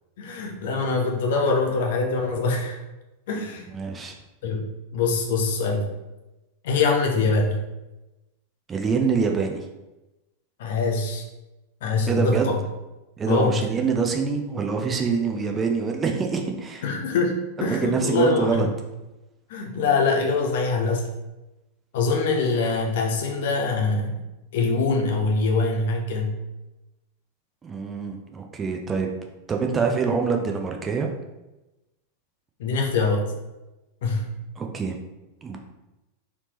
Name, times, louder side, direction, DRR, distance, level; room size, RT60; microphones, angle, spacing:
voice 1, 0.2-2.8 3.3-3.7 4.4-4.6 4.9-5.9 6.6-7.6 10.6-11.2 11.8-12.6 13.3-13.6 16.8-18.7 19.5-21.1 21.9-24.2 24.5-26.4 32.6-33.3 34.0-34.3, left 3 dB, 55° left, 2 dB, 0.7 m, -23 dB
voice 2, 3.7-4.1 8.7-9.7 12.1-12.5 13.2-16.8 17.6-18.7 27.6-29.1 29.5-31.1 34.6-35.0 35.4-35.6, right 5 dB, 20° right, 2 dB, 0.5 m, -25 dB
4.1 x 3.4 x 3.0 m, 1.0 s
figure-of-eight pair, 90°, 0 cm